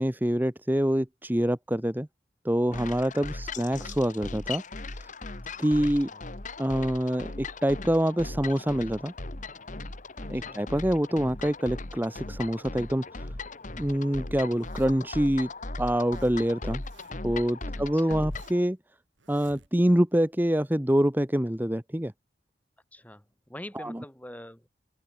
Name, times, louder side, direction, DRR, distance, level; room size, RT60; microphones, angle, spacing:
voice 1, 0.0-2.1 2.4-4.6 5.0-5.1 5.6-6.1 6.6-9.1 10.3-13.3 13.8-15.5 15.8-16.8 17.2-18.8 19.3-22.1 23.7-24.0, equal, 10° right, 1.1 m, -26 dB
sound 1, 2.7-18.6, left 2 dB, 40° left, 1.8 m, -38 dB
voice 2, 10.2-10.7 17.7-18.3 22.9-24.7, left 1 dB, 10° left, 3.1 m, -45 dB
Zipper (clothing), 14.5-15.2 15.8-16.4 16.6-17.4 17.8-18.7 19.2-20.0, right 3 dB, 80° right, 5.8 m, -57 dB
open air
head